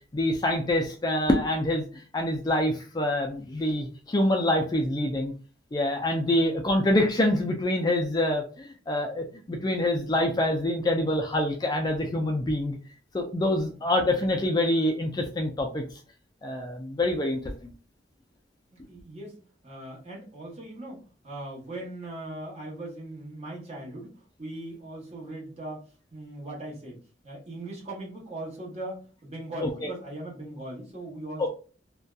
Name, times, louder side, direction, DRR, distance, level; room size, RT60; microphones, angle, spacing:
voice 1, 0.1-1.8 2.1-5.3 5.7-12.8 13.1-15.8 16.4-17.5 29.6-29.7, left 1 dB, 20° left, 3 dB, 0.3 m, -26 dB
voice 2, 18.7-19.4 19.6-24.1 24.4-25.8 26.1-27.0 27.2-31.5, right 1 dB, 35° right, -3 dB, 1.1 m, -39 dB
2.6 x 2.2 x 2.2 m, 0.37 s
head